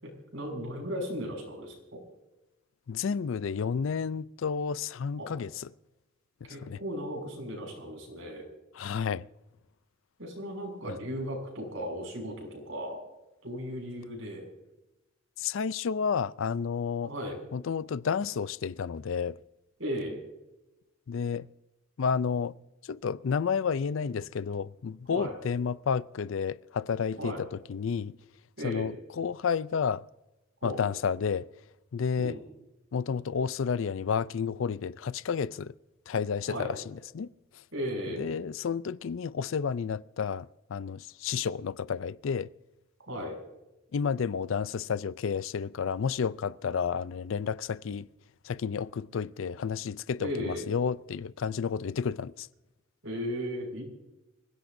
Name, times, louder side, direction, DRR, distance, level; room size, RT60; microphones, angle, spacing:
voice 1, 0.0-2.0 5.2-5.3 6.5-8.4 10.2-13.0 13.4-14.5 17.0-17.4 19.8-20.2 25.1-25.4 27.2-27.4 28.6-28.9 30.6-30.8 32.2-32.4 36.5-36.7 37.7-38.3 43.1-43.4 50.2-50.7 53.0-53.8, equal, 65° right, 6.4 m, -36 dB
voice 2, 2.9-5.7 6.4-6.8 8.7-9.2 15.4-17.1 17.5-19.4 21.1-21.5 22.0-22.5 22.9-28.2 28.6-30.0 30.6-31.5 31.9-32.4 32.9-35.7 36.1-37.3 38.2-42.5 43.9-48.1 48.4-52.5, left 6 dB, 65° left, 0.4 m, -31 dB
26.0 x 16.5 x 2.6 m
head